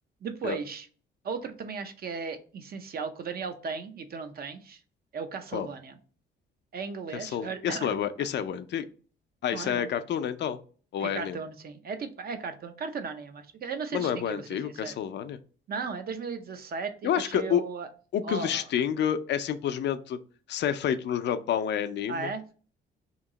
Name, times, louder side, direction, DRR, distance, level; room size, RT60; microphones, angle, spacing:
voice 1, 0.2-0.9 1.2-4.8 5.1-6.0 6.7-8.0 9.5-9.9 11.0-15.0 15.7-17.9 18.2-18.6 22.1-22.5, right 5 dB, 50° right, 8 dB, 0.6 m, -36 dB
voice 2, 7.1-8.9 9.4-10.6 10.9-11.4 13.9-15.4 17.0-17.6 18.1-20.2 20.5-22.3, left 9 dB, 60° left, 11 dB, 0.4 m, -29 dB
2.9 x 2.7 x 3.7 m, 0.41 s
cardioid pair, 90°, 20 cm